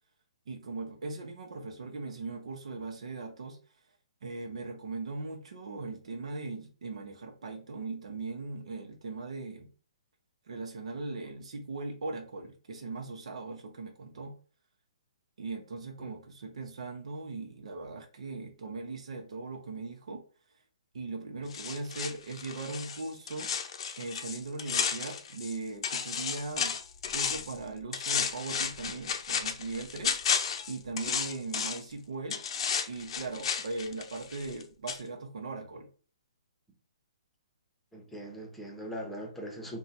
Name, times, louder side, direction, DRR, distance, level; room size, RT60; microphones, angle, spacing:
voice 1, 0.5-3.6 4.2-9.7 10.5-14.3 15.4-20.2 20.9-23.5 24.0-26.8 27.1-30.2 30.7-32.4 32.9-35.9, right 3 dB, 70° right, 3 dB, 0.9 m, -39 dB
sound 1, 21.5-25.6 25.8-27.6 27.9-31.9 32.3-34.6 34.9-35.0, left 7 dB, 55° left, 0.6 m, -33 dB
voice 2, 37.9-39.8, equal, 5° left, 1 dB, 0.9 m, -40 dB
3.7 x 2.3 x 4.1 m, 0.39 s
hypercardioid pair, 145°, 3 cm